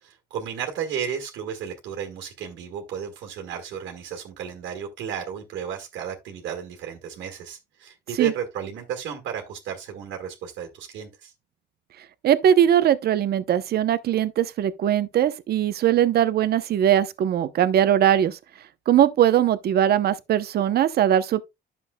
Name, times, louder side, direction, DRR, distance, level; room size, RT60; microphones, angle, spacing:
voice 1, 0.3-11.3, right 8 dB, 85° right, 1.8 m, -33 dB
voice 2, 12.2-18.4 18.9-21.4, right 10 dB, 60° right, 0.8 m, -20 dB
10.5 x 6.9 x 2.2 m
cardioid pair, 130°, 19 cm